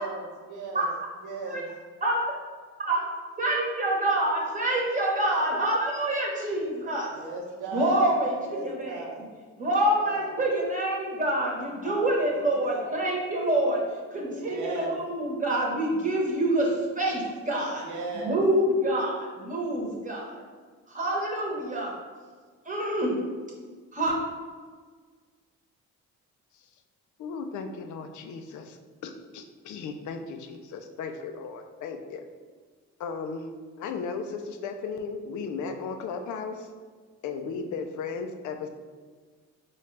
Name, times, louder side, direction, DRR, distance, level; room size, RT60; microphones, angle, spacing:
voice 1, 0.0-0.9 1.2-1.6 7.1-8.1 8.5-9.2 10.0-10.3 11.8-12.8 14.4-14.9 17.8-18.4, right 3 dB, 85° right, 0 dB, 0.8 m, -36 dB
voice 2, 3.4-7.1 7.7-9.0 9.6-13.8 14.1-17.9 18.1-20.3 20.9-21.9 22.6-23.2 23.9-24.2, right 1 dB, 25° right, -4 dB, 1.0 m, -26 dB
voice 3, 27.2-32.2 33.0-33.5 33.8-36.7 37.2-38.7, left 5 dB, 75° left, 5 dB, 0.5 m, -36 dB
4.4 x 2.4 x 3.1 m, 1.5 s
cardioid pair, 90°, 30 cm